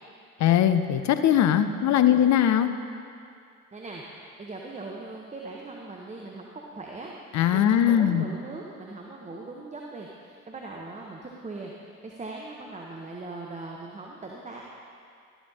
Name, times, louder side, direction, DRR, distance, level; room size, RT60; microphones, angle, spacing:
voice 1, 0.4-2.7 7.3-8.2, left 10 dB, 40° left, 10 dB, 0.6 m, -20 dB
voice 2, 3.7-14.6, right 3 dB, 15° right, -1 dB, 0.9 m, -40 dB
12.5 x 11.0 x 2.8 m, 2.4 s
hypercardioid pair, 60°, 45 cm